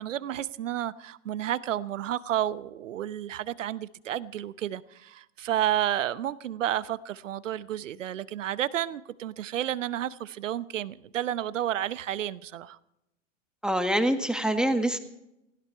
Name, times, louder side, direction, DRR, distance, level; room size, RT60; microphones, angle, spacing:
voice 1, 0.0-12.8, right 11 dB, 80° right, 0.9 m, -31 dB
voice 2, 13.6-15.0, right 1 dB, ahead, 1.5 m, -25 dB
19.0 x 16.0 x 4.6 m
hypercardioid pair, 105°, 37 cm